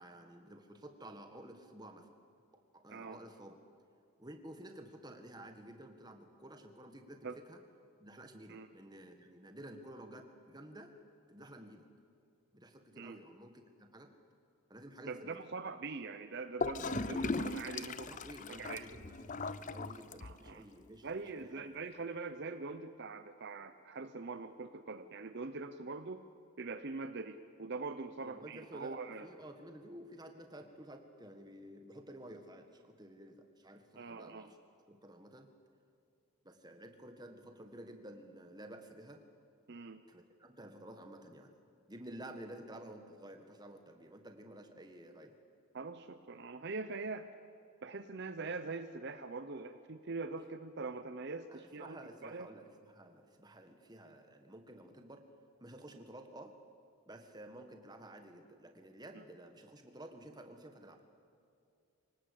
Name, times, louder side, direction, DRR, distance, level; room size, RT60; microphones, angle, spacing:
voice 1, 0.0-2.1 2.7-3.6 4.2-7.6 8.0-10.9 11.3-11.8 12.5-14.1 14.7-15.4 17.8-21.7 28.2-34.6 34.9-35.5 36.4-39.2 40.1-41.5 41.9-45.4 51.5-55.2 55.6-56.5 57.1-61.0, right 1 dB, 20° right, 6 dB, 1.7 m, -52 dB
voice 2, 2.9-3.2 7.2-7.3 8.5-8.7 13.0-13.2 15.0-18.2 18.5-18.9 20.2-20.6 21.0-26.2 26.6-29.3 34.0-34.5 39.7-40.0 45.7-47.3 47.8-52.5 59.1-59.2, right 3 dB, 50° right, 10 dB, 0.7 m, -43 dB
Gurgling / Toilet flush, 16.6-20.6, left 3 dB, 35° left, 0.5 m, -38 dB
26.0 x 18.5 x 8.6 m, 2.5 s
head